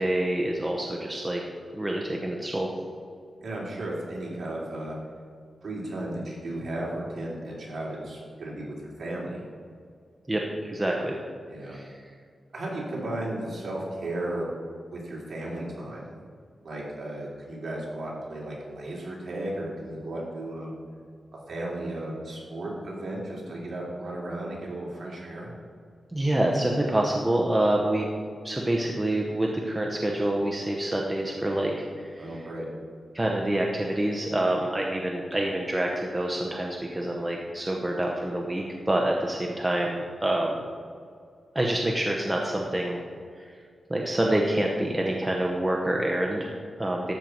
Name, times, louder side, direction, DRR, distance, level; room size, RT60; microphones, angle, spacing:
voice 1, 0.0-1.4 1.7-2.7 10.3-11.2 11.7-11.9 26.1-28.1 28.4-32.4 33.1-40.6 41.5-43.0 43.4-43.5 43.9-47.1, right 1 dB, 10° right, -1 dB, 0.9 m, -27 dB
voice 2, 3.4-5.0 5.6-9.4 11.5-11.8 12.5-14.5 14.9-16.0 16.6-20.7 21.5-25.5 32.2-32.7, right 1 dB, 50° right, -4 dB, 3.1 m, -34 dB
12.5 x 4.5 x 7.8 m, 2.2 s
wide cardioid pair, 170°, 0 cm